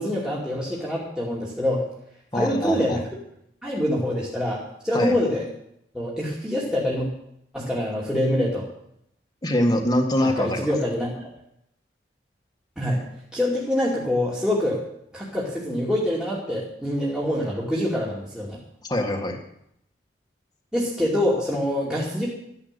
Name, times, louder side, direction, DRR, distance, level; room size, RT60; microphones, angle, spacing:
voice 1, 0.0-1.8 2.3-3.0 3.6-5.4 5.9-7.1 7.5-8.6 10.2-11.2 12.8-13.0 13.3-14.8 15.1-18.6 20.7-22.3, left 1 dB, 5° right, -6 dB, 2.6 m, -25 dB
voice 2, 2.3-3.0 4.9-5.1 9.4-10.7 18.8-19.4, left 1 dB, 25° left, 1 dB, 1.8 m, -24 dB
13.0 x 10.5 x 6.8 m, 0.75 s
head